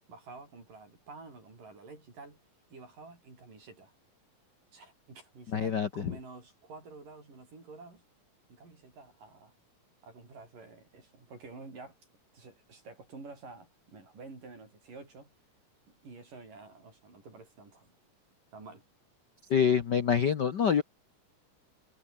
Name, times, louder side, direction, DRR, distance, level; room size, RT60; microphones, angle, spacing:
voice 1, 0.1-2.4 2.7-3.9 4.7-8.0 8.5-9.5 10.0-12.0 12.3-15.3 15.9-17.9 18.5-18.8, right 3 dB, 75° right, 9.8 m, -50 dB
voice 2, 5.5-6.1 19.5-20.8, left 7 dB, 70° left, 1.0 m, -26 dB
omnidirectional pair, 3.8 m